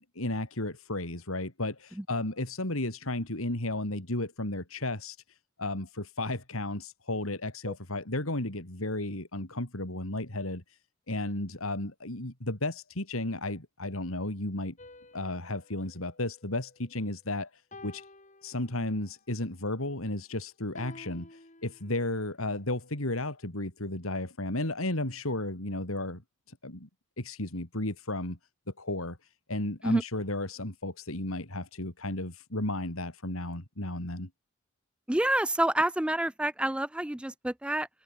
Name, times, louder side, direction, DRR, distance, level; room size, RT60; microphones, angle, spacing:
voice 1, 0.0-10.6 11.1-14.8 15.1-18.1 18.4-26.2 26.5-26.9 27.2-28.4 28.8-29.2 29.5-34.3, left 2 dB, 85° left, 4.1 m, -33 dB
sound 1, 14.8-17.1 17.7-19.2 20.8-22.2, left 2 dB, 35° left, 5.2 m, -52 dB
voice 2, 35.1-37.9, right 1 dB, 5° right, 0.4 m, -28 dB
head